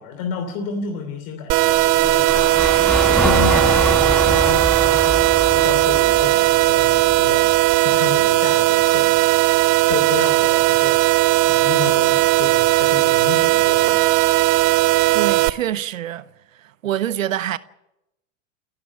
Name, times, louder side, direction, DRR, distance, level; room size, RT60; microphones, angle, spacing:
voice 1, 0.0-9.2 9.9-14.0, left 6 dB, 55° left, 3.1 m, -31 dB
sound 1, 1.5-15.5, right 19 dB, 45° right, 0.9 m, -17 dB
sound 2, 1.7-7.8, left 1 dB, ahead, 1.3 m, -25 dB
voice 2, 15.1-16.3 16.6-17.6, right 11 dB, 80° right, 0.8 m, -25 dB
29.5 x 13.0 x 7.3 m
hypercardioid pair, 85°, 40 cm